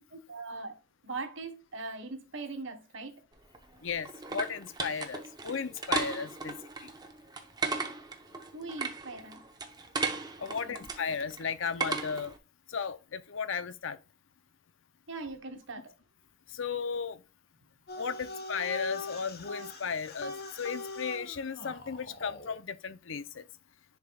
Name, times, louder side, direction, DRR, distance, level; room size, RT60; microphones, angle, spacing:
voice 1, 0.1-0.8 1.0-3.2 8.5-9.4 10.4-10.9 15.1-15.9, right 3 dB, 65° right, 1.4 m, -41 dB
sound 1, 3.4-12.4, right 4 dB, 20° right, 0.8 m, -36 dB
voice 2, 3.8-6.5 10.4-12.3 12.7-14.0 16.5-17.2 18.0-23.4, left 6 dB, 65° left, 0.6 m, -35 dB
sound 2, 17.9-22.6, left 3 dB, 45° left, 1.2 m, -42 dB
10.5 x 4.8 x 2.3 m
head